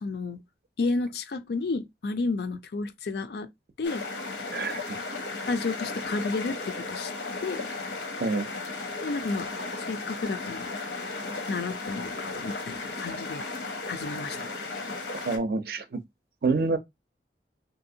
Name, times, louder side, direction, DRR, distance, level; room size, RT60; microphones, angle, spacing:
voice 1, 0.0-0.4 0.8-3.5 3.8-4.0 5.5-7.1 7.4-7.6 9.0-9.5 9.7-10.7 11.5-13.4 13.9-14.5, left 3 dB, 65° left, 0.4 m, -31 dB
sound 1, 3.8-15.4, left 3 dB, 85° left, 0.8 m, -35 dB
voice 2, 4.5-5.0 8.2-8.5 15.3-16.0 16.4-16.8, right 3 dB, 55° right, 0.5 m, -27 dB
3.2 x 2.6 x 2.7 m
head